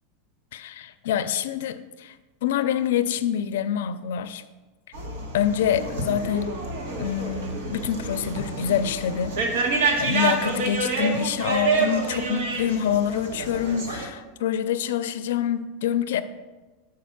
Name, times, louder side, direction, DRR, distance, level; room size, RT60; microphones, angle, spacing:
voice 1, 0.5-2.1 2.4-4.4 5.3-6.5 7.0-16.2, left 9 dB, 75° left, 12 dB, 0.5 m, -26 dB
sound 1, 4.9-14.1, right 3 dB, 75° right, 1.4 m, -28 dB
7.2 x 4.8 x 5.9 m, 1.2 s
supercardioid pair, 180°, 0 cm